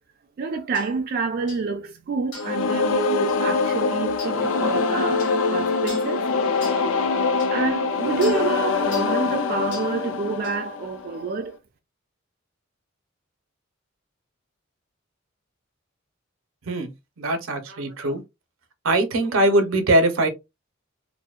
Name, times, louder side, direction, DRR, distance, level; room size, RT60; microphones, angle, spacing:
voice 1, 0.4-6.3 7.5-11.6, right 4 dB, 50° right, 0.3 m, -28 dB
sound 1, 0.7-0.9 1.5-1.7 2.3-2.6 3.3-3.4 4.2-4.4 5.2-5.4 5.9-6.1 6.6-6.8 7.4-7.5 8.2-8.4 8.9-9.2 9.7-9.9 10.4-10.6, left 2 dB, 60° left, 1.3 m, -40 dB
sound 2, 2.3-11.2, left 4 dB, 85° left, 0.4 m, -24 dB
voice 2, 17.2-18.2 18.8-20.3, right 1 dB, 85° right, 0.6 m, -21 dB
2.6 x 2.1 x 2.3 m
head